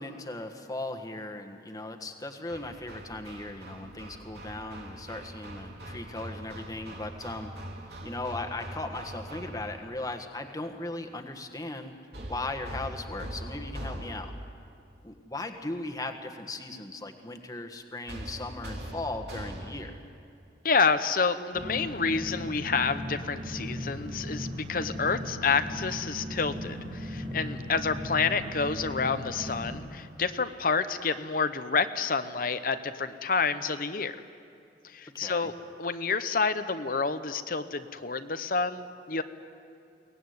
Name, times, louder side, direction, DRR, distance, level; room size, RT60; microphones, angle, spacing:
voice 1, 0.0-7.5 8.0-11.9 12.3-14.3 15.0-20.0 35.1-35.5, left 2 dB, 20° left, 5 dB, 1.5 m, -37 dB
Hammer, 2.5-9.9 12.1-14.5 18.1-20.0, right 1 dB, 70° right, 3.5 m, -42 dB
voice 2, 20.6-34.2 34.8-35.5 35.8-39.2, left 5 dB, 50° left, 11 dB, 0.9 m, -29 dB
sound 1, 21.5-29.8, equal, 50° right, 3.7 m, -37 dB
23.0 x 18.5 x 9.5 m, 2.5 s
head